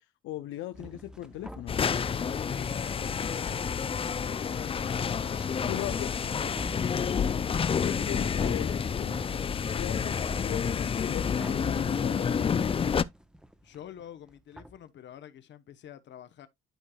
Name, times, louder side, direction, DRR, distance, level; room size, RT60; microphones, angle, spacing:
voice 1, 0.0-1.7 5.7-6.1 7.5-9.2 9.7-12.3, left 14 dB, 85° left, 0.6 m, -39 dB
sound 1, 0.7-14.8, equal, 5° right, 0.8 m, -48 dB
sound 2, 1.7-13.0, left 6 dB, 30° left, 0.4 m, -29 dB
sound 3, 1.9-9.4, right 3 dB, 70° right, 3.4 m, -59 dB
voice 2, 2.1-6.6 13.6-16.5, left 10 dB, 65° left, 0.9 m, -47 dB
11.5 x 4.6 x 2.3 m
cardioid pair, 90°, 20 cm